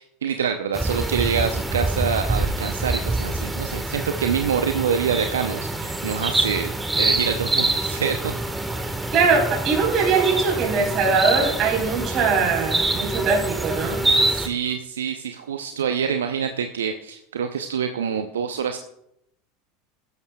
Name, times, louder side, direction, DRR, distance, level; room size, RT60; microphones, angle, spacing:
voice 1, 0.0-6.7 7.0-8.3 14.3-18.8, right 7 dB, 75° right, 7 dB, 0.6 m, -26 dB
sound 1, 0.7-14.5, right 2 dB, 10° right, 1.4 m, -25 dB
voice 2, 9.1-14.0, right 4 dB, 40° right, -1 dB, 4.2 m, -21 dB
16.5 x 12.5 x 2.3 m, 0.78 s
figure-of-eight pair, 80°, 0 cm